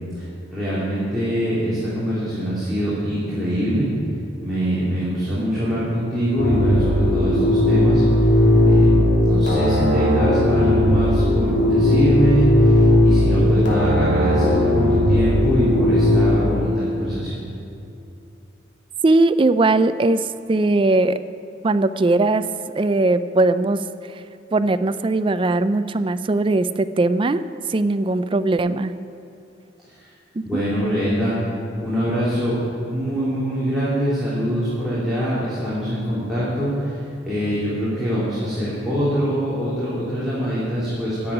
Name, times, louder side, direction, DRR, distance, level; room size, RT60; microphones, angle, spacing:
voice 1, 0.5-3.9 4.4-8.3 8.6-17.4 29.8-30.1 30.4-31.4 31.8-32.5 32.8-37.0 37.2-41.3, equal, ahead, -12 dB, 3.1 m, -23 dB
sound 1, 6.4-16.4, left 1 dB, 75° left, 3.0 m, -17 dB
voice 2, 19.0-21.2 21.6-22.4 22.8-23.8 24.5-27.4 27.7-28.9 30.4-30.6, right 2 dB, 25° right, 13 dB, 0.4 m, -19 dB
11.0 x 7.8 x 9.8 m, 2.7 s
head